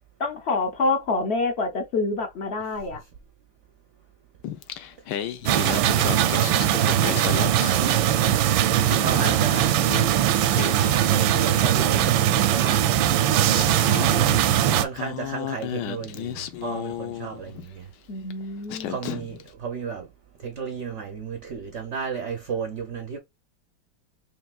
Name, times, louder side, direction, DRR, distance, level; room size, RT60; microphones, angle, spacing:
voice 1, 0.2-3.0 18.1-19.0, left 3 dB, 55° left, 0.7 m, -26 dB
Singing, 4.4-8.4 8.7-11.9 13.0-13.1 13.5-17.7 18.3-18.4 18.7-19.5, left 11 dB, 75° left, 1.1 m, -34 dB
sound 1, 5.5-14.9, right 11 dB, 85° right, 1.3 m, -20 dB
voice 2, 6.0-8.2 9.0-9.8 11.3-13.4 14.7-17.9 18.9-20.1 20.4-23.2, right 6 dB, 65° right, 0.7 m, -34 dB
5.2 x 2.9 x 2.3 m
omnidirectional pair, 2.1 m